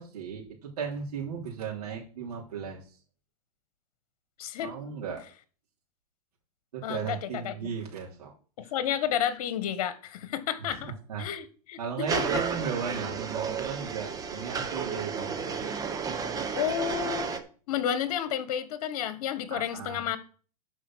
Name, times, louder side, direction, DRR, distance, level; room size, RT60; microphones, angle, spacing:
voice 1, 0.0-3.0 4.6-5.2 6.7-8.3 8.6-8.7 10.7-10.8 11.1-11.3 11.8-15.9 19.5-20.1, right 7 dB, 85° right, 3.4 m, -36 dB
voice 2, 4.4-4.7 6.8-7.7 8.6-10.9 11.2-12.4 16.6-17.3 17.7-20.2, left 10 dB, 65° left, 1.4 m, -31 dB
sound 1, 12.1-17.4, right 6 dB, 20° right, 1.3 m, -32 dB
12.0 x 5.1 x 6.3 m
hypercardioid pair, 135°, 20 cm